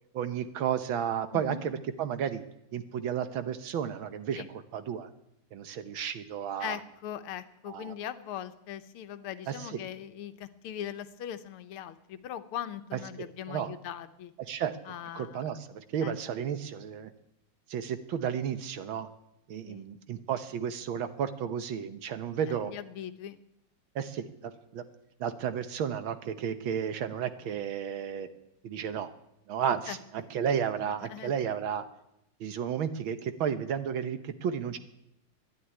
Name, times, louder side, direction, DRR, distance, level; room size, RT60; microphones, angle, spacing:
voice 1, 0.1-2.4 2.7-4.4 4.7-5.1 5.5-6.8 7.7-7.9 9.5-9.7 13.2-13.7 14.4-17.1 17.7-19.1 19.5-22.7 23.9-24.8 25.2-28.3 28.6-29.1 29.5-31.8 32.4-34.8, right 8 dB, 70° right, 11 dB, 1.7 m, -33 dB
voice 2, 1.3-1.6 4.3-4.5 6.6-14.3 14.9-15.5 16.0-16.1 19.7-19.9 22.6-23.4 29.9-30.3 31.1-31.3, left 10 dB, 80° left, 11 dB, 1.7 m, -40 dB
12.5 x 11.0 x 9.8 m, 0.82 s
omnidirectional pair, 2.4 m